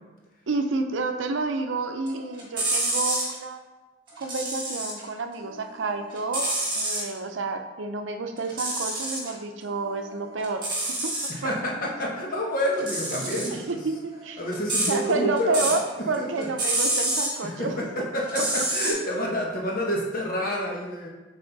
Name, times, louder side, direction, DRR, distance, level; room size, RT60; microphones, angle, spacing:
voice 1, 0.5-3.7 4.2-11.1 11.4-11.5 13.5-14.4 14.9-15.8 16.1-17.8, right 3 dB, 80° right, 6 dB, 0.6 m, -30 dB
sound 1, 2.1-3.3 4.1-5.1 5.4-7.1 8.4-9.3 9.7-11.4 12.7-15.9 16.1-17.4 18.2-18.9, right 1 dB, 25° right, 1.6 m, -28 dB
voice 2, 11.3-13.8 14.4-15.8 16.2-16.3 17.4-17.7 17.9-21.1, equal, 50° left, -2 dB, 1.2 m, -28 dB
6.0 x 4.2 x 4.0 m, 1.2 s
head